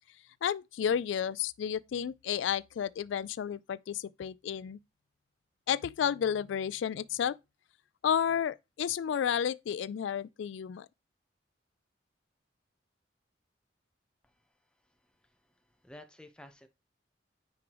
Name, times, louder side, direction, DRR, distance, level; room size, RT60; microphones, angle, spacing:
voice 1, 0.4-4.8 5.7-7.4 8.0-10.9, left 8 dB, 75° left, 0.3 m, -31 dB
voice 2, 14.2-16.7, left 1 dB, 5° left, 0.9 m, -55 dB
9.7 x 4.8 x 3.0 m
head